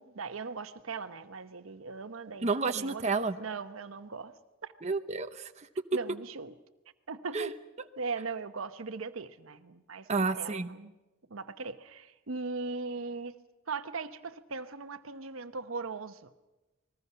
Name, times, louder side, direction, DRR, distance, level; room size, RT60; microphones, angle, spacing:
voice 1, 0.0-3.0 3.4-4.3 4.6-4.7 5.9-6.5 7.1-7.5 8.0-10.9 11.3-13.3 13.7-16.3, right 4 dB, 85° right, 1.0 m, -39 dB
voice 2, 2.4-3.4 4.8-5.7 7.3-7.5 10.1-10.7, right 4 dB, 35° right, 0.8 m, -30 dB
28.5 x 20.5 x 5.7 m
head